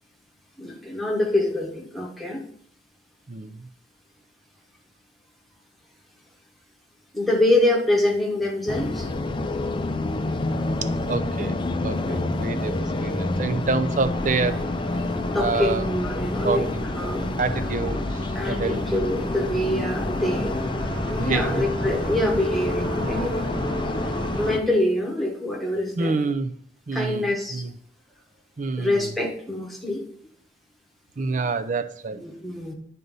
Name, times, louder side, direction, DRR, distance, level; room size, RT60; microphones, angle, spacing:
voice 1, 0.6-2.4 7.1-9.1 12.1-12.4 15.3-17.3 18.3-20.5 21.1-23.4 24.4-26.2 26.9-27.7 28.8-30.1 32.2-32.7, left 1 dB, ahead, -1 dB, 1.3 m, -25 dB
voice 2, 3.3-3.6 11.1-11.6 11.8-14.6 15.4-15.9 16.4-16.9 17.4-18.2 18.5-18.8 21.1-21.6 26.0-26.5 26.9-27.7 28.6-29.1 31.2-32.2, right 4 dB, 45° right, 12 dB, 0.5 m, -27 dB
sound 1, 8.7-24.6, left 2 dB, 25° left, 0.5 m, -28 dB
sound 2, 14.0-24.6, equal, 85° right, 1.9 m, -35 dB
9.2 x 4.1 x 5.3 m, 0.62 s
head